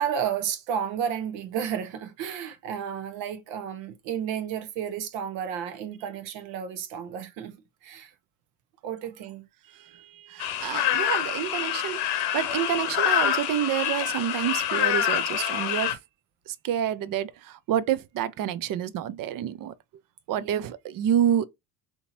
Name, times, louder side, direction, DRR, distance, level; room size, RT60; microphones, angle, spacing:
voice 1, 0.0-7.6 7.8-8.1 8.8-9.5 20.3-20.5, right 8 dB, 70° right, 1.0 m, -32 dB
voice 2, 9.7-16.0 16.5-19.7 20.3-21.4, right 10 dB, 45° right, 0.6 m, -28 dB
sound 1, 10.4-16.0, left 10 dB, 60° left, 0.9 m, -26 dB
3.6 x 2.9 x 2.6 m
supercardioid pair, 90°, 45 cm